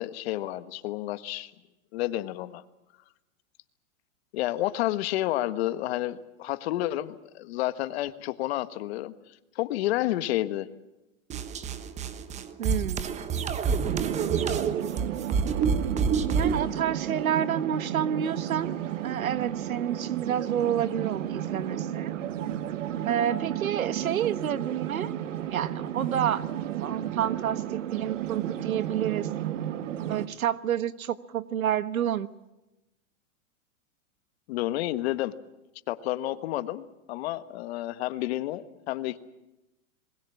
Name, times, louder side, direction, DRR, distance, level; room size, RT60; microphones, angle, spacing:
voice 1, 0.0-1.5 1.9-2.6 4.3-9.1 9.5-10.7 34.5-35.3 35.9-39.2, left 15 dB, 50° left, 12 dB, 1.5 m, -30 dB
sound 1, 11.3-16.6, right 6 dB, 15° right, 1.2 m, -27 dB
voice 2, 12.6-13.1 16.2-18.8 19.0-22.1 23.1-25.1 25.5-26.4 26.7-29.3 30.1-32.3, right 9 dB, 90° right, 14 dB, 1.4 m, -29 dB
sound 2, 13.8-30.3, right 11 dB, 65° right, 1.6 m, -33 dB
27.0 x 21.5 x 7.2 m, 0.97 s
hypercardioid pair, 145°, 41 cm